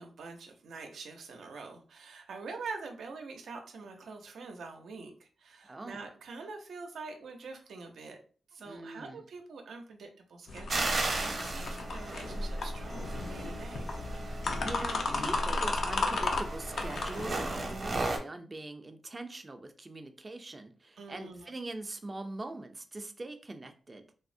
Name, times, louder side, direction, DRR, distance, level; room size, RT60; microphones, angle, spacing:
voice 1, 0.0-8.2 8.5-13.9 17.5-17.9 21.0-21.5, right 4 dB, 85° right, 4 dB, 0.6 m, -45 dB
voice 2, 5.6-6.0 8.6-9.2 14.6-24.0, right 2 dB, 25° right, 7 dB, 0.4 m, -42 dB
sound 1, 10.5-18.0, left 2 dB, 65° left, 0.5 m, -34 dB
sound 2, 10.7-18.2, right 2 dB, 50° right, 0.8 m, -36 dB
3.4 x 2.0 x 2.5 m, 0.40 s
cardioid pair, 100°, 0 cm